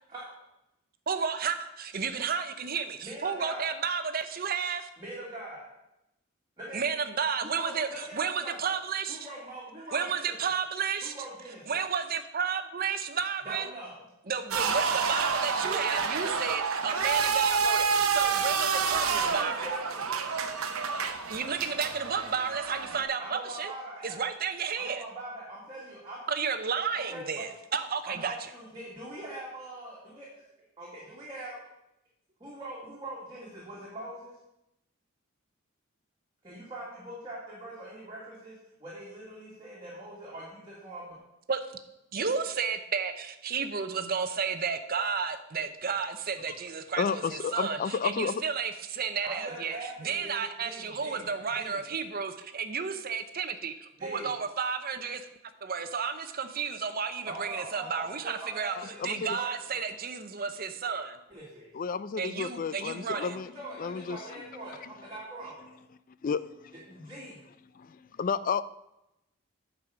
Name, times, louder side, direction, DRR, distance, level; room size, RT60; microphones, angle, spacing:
voice 1, 1.1-4.9 6.7-9.3 9.9-11.1 11.7-13.7 14.3-19.7 21.3-23.7 24.0-25.0 26.3-28.4 41.5-41.6 42.1-55.2 55.6-58.8 59.0-61.2 62.2-63.3, right 6 dB, 45° right, 9 dB, 0.7 m, -32 dB
voice 2, 3.0-3.7 5.0-5.7 6.6-6.8 7.4-8.5 9.1-10.3 11.0-11.8 13.4-14.0 15.6-15.8 19.0-20.1 23.2-24.2 24.8-26.2 26.9-27.4 28.0-30.3 30.8-31.6 32.4-34.3 36.4-41.2 49.2-51.3 51.5-51.8 54.0-54.3 57.2-59.8 61.3-61.7 63.1-65.5 66.9-67.4, right 1 dB, 20° right, -7 dB, 2.0 m, -42 dB
sound 1, 14.5-23.0, right 5 dB, 90° right, 0.8 m, -28 dB
voice 3, 47.0-48.4 58.8-59.4 61.7-63.5 63.8-64.2 64.5-64.6 66.2-66.4 67.8-68.6, left 6 dB, 40° left, 16 dB, 0.3 m, -31 dB
8.6 x 4.9 x 6.9 m, 0.88 s
head